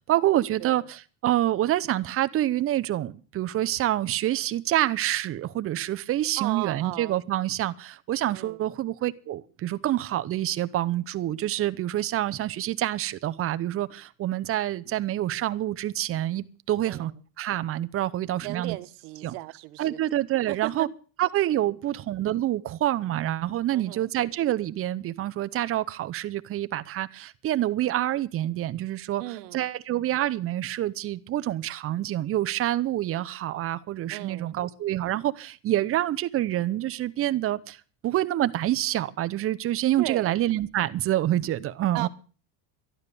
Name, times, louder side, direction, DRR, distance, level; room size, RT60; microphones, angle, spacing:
voice 1, 0.1-17.1 17.4-18.8 19.2-19.3 19.8-20.9 21.2-29.2 29.5-37.8 38.0-42.1, right 13 dB, 30° right, 0.6 m, -27 dB
voice 2, 6.4-7.2 8.3-8.7 16.8-17.1 18.4-20.0 20.5-20.9 21.6-21.7 23.7-24.1 29.2-29.7 34.1-34.5 40.0-40.4 41.9-42.1, right 20 dB, 90° right, 1.2 m, -36 dB
12.5 x 12.0 x 6.8 m
cardioid pair, 165°, 47 cm